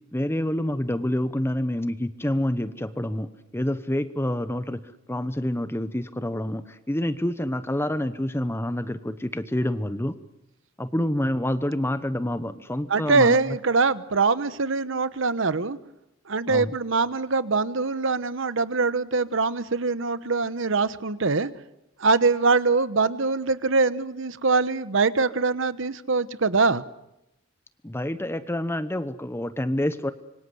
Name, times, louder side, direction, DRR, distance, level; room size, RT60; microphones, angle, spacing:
voice 1, 0.1-3.3 3.5-4.8 5.1-6.6 6.9-10.1 10.8-13.4 16.5-16.7 27.8-30.1, left 1 dB, 10° left, 12 dB, 0.9 m, -27 dB
voice 2, 12.9-15.8 16.3-21.5 22.0-26.8, right 4 dB, 70° right, 15 dB, 1.0 m, -23 dB
26.0 x 24.5 x 8.0 m, 0.86 s
head